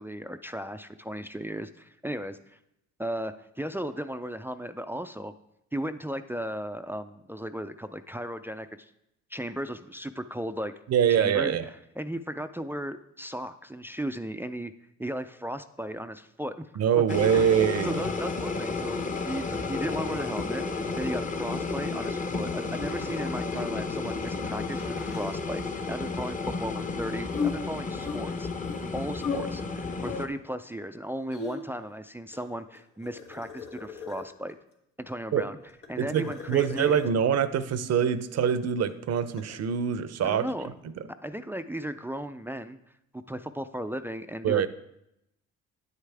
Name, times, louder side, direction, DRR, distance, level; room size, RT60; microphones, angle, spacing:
voice 1, 0.0-2.6 3.0-5.3 5.7-8.9 9.3-10.7 11.1-14.7 15.0-16.7 17.3-17.6 17.8-28.5 28.9-34.6 35.0-35.6 35.9-37.0 40.2-40.7 41.2-42.8 43.1-44.7, equal, 10° right, 10 dB, 0.3 m, -36 dB
voice 2, 10.9-11.7 16.8-18.0 35.3-35.4 36.0-40.5 44.4-44.7, right 8 dB, 55° right, 14 dB, 0.6 m, -24 dB
sound 1, 17.1-30.3, left 3 dB, 25° left, 0.8 m, -32 dB
sound 2, 22.9-24.0 24.2-24.3 24.7-25.5 27.3-29.4 29.6-30.2 31.0-31.8 32.3-34.5 35.6-37.2 38.8-39.6, left 6 dB, 80° left, 1.6 m, -38 dB
9.7 x 8.2 x 3.4 m, 0.82 s
cardioid pair, 90°, 30 cm